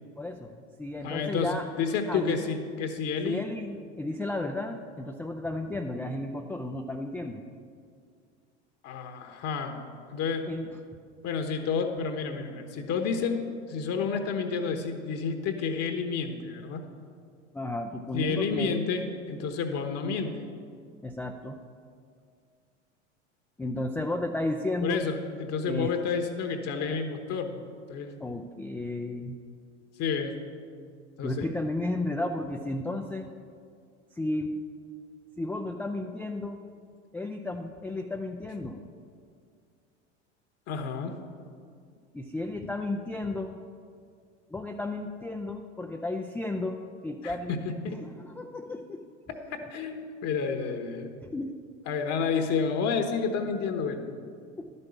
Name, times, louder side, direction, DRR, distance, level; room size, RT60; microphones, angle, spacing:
voice 1, 0.2-1.7 2.1-2.4 3.2-7.4 10.5-10.7 17.5-18.8 21.0-21.6 23.6-25.0 25.7-25.9 28.2-29.4 31.2-33.3 34.2-34.6 35.4-36.6 37.1-38.8 42.1-43.6 44.5-47.6 48.0-49.0 51.3-51.5 54.6-54.7, left 2 dB, 5° left, 3 dB, 0.3 m, -33 dB
voice 2, 1.0-3.4 8.8-9.8 10.1-10.5 11.2-16.9 18.1-20.5 24.8-27.6 27.9-28.1 30.0-30.4 31.2-31.5 40.7-41.2 47.2-48.0 49.3-51.1 51.9-54.1, left 5 dB, 45° left, 6 dB, 1.1 m, -30 dB
11.5 x 5.4 x 7.0 m, 2.2 s
hypercardioid pair, 80°, 36 cm